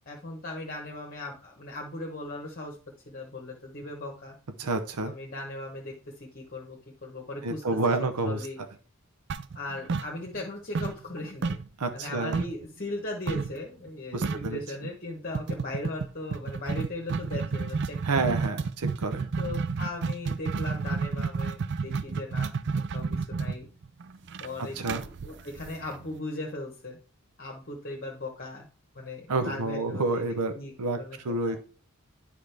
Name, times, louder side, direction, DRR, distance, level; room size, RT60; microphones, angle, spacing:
voice 1, 0.1-2.8 3.1-4.3 5.0-7.6 8.0-8.6 9.5-11.6 11.9-18.3 19.4-22.5 22.9-23.7 24.4-25.0 25.2-27.0 27.4-28.7 28.9-30.2 30.5-31.2 31.4-31.5, left 2 dB, 40° left, 0 dB, 1.1 m, -38 dB
voice 2, 4.6-5.1 7.4-8.5 11.8-12.4 14.1-14.6 18.0-19.3 24.7-25.0 29.3-30.5 30.8-31.0 31.2-31.6, right 3 dB, 90° right, 8 dB, 0.7 m, -29 dB
sound 1, 9.3-10.5 10.7-12.6 13.3-13.6 13.9-14.0 14.2-14.6 15.3-26.1, right 4 dB, 50° right, 0.4 m, -31 dB
9.7 x 5.0 x 3.4 m, 0.39 s
head